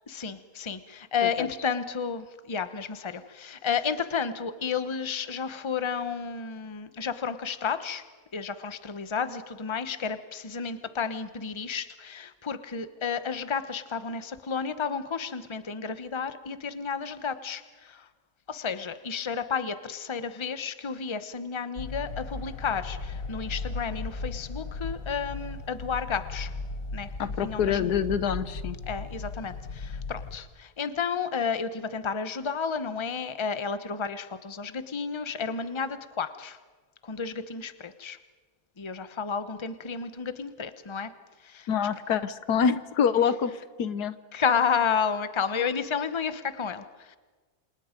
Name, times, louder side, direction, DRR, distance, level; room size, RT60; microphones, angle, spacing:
voice 1, 0.1-8.0 8.3-18.1 18.5-26.5 26.9-27.1 27.4-27.9 28.9-36.6 37.0-38.2 38.8-41.1 41.4-41.7 44.3-47.2, left 6 dB, 20° left, 11 dB, 1.0 m, -31 dB
sound 1, 21.8-30.4, left 3 dB, 60° left, 2.3 m, -36 dB
voice 2, 27.2-28.8 41.7-43.5 43.8-44.1, left 7 dB, 85° left, 13 dB, 1.6 m, -26 dB
29.5 x 27.0 x 5.2 m, 1.4 s
omnidirectional pair, 1.7 m